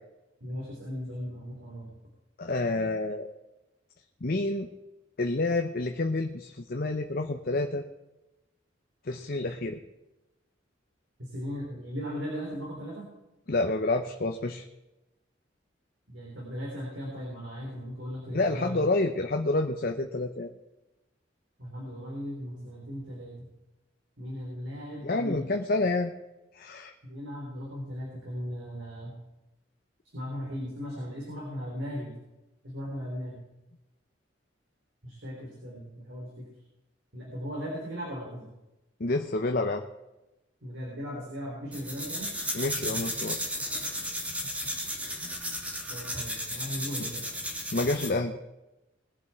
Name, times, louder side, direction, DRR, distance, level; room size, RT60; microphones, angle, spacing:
voice 1, 0.4-2.0 11.2-13.1 16.1-18.9 21.6-23.5 24.2-25.5 27.0-29.2 30.1-32.1 32.6-33.4 35.0-36.5 37.1-38.5 40.6-42.3 45.9-47.2, equal, 85° right, -3 dB, 4.1 m, -37 dB
voice 2, 2.4-3.3 4.2-4.7 5.2-7.8 9.0-9.8 13.5-14.6 18.3-20.5 25.0-26.1 26.5-26.9 39.0-39.8 42.5-43.4 47.7-48.3, left 2 dB, 50° left, 4 dB, 0.9 m, -28 dB
sound 1, 41.7-48.2, equal, 10° right, 2.3 m, -34 dB
21.0 x 7.5 x 4.5 m, 0.98 s
head